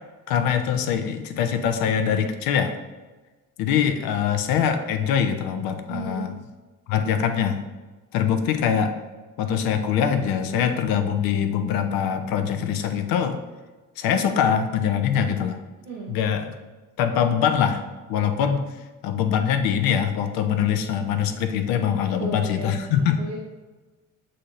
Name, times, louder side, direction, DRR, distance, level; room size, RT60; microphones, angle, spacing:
voice 1, 0.3-2.7 3.6-6.4 6.9-7.6 8.1-8.9 9.4-13.4 14.0-15.6 16.1-16.5 17.0-17.8 18.1-18.7 19.0-23.2, left 8 dB, 55° left, 8 dB, 0.6 m, -23 dB
voice 2, 5.9-6.3 15.9-16.2 22.2-23.4, right 3 dB, 80° right, -5 dB, 0.9 m, -34 dB
7.5 x 2.7 x 2.6 m, 1.2 s
figure-of-eight pair, 50°, 42 cm